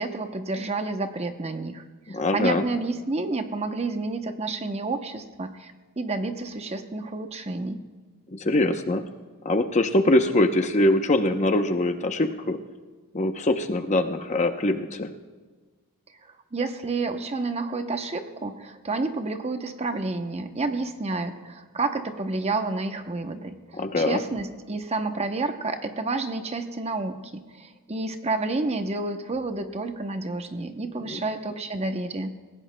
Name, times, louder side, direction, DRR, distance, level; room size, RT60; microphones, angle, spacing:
voice 1, 0.0-7.9 16.5-32.4, right 3 dB, 30° right, 7 dB, 0.7 m, -30 dB
voice 2, 2.1-2.6 8.3-9.0 9.4-12.6 13.1-15.1 23.8-24.2 31.0-31.2, left 1 dB, 30° left, 7 dB, 0.7 m, -23 dB
27.5 x 16.0 x 2.2 m, 1.4 s
head